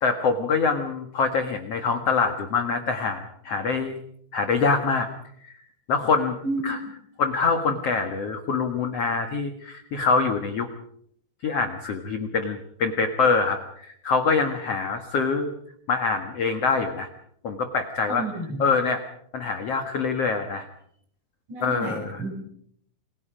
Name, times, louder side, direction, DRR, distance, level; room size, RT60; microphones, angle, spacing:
voice 1, 0.0-4.0 4.3-5.1 5.4-5.5 5.9-6.4 6.6-6.8 7.2-10.7 11.4-15.5 15.9-17.1 17.4-18.2 18.6-19.0 19.3-20.7 21.6-22.1, left 4 dB, 60° left, 6 dB, 1.7 m, -24 dB
voice 2, 6.4-6.8 18.1-18.6 21.5-22.3, right 2 dB, 45° right, 2 dB, 7.5 m, -31 dB
29.0 x 22.5 x 5.1 m, 0.67 s
omnidirectional pair, 5.1 m